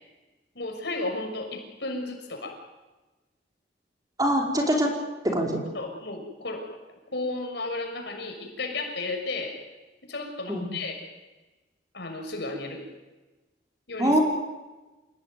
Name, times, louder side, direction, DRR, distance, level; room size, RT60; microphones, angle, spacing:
voice 1, 0.5-2.6 5.7-6.7 7.1-9.6 10.0-11.0 11.9-12.9 13.9-14.2, left 2 dB, 70° left, 3 dB, 6.6 m, -33 dB
voice 2, 4.2-5.0 5.2-5.6 10.5-10.7 14.0-14.2, equal, 20° right, 1 dB, 5.2 m, -23 dB
28.5 x 18.5 x 9.5 m, 1.1 s
head